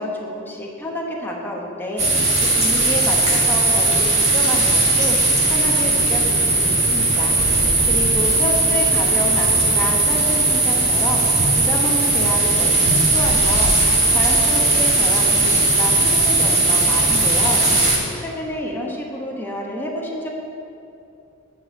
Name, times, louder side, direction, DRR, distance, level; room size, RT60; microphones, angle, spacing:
voice 1, 0.0-7.3 7.8-11.2 11.5-13.7 14.1-17.6 18.1-20.3, left 1 dB, 10° left, -2 dB, 1.2 m, -29 dB
sound 1, 2.0-18.0, right 2 dB, 30° right, 1.8 m, -17 dB
9.3 x 5.3 x 7.5 m, 2.8 s
head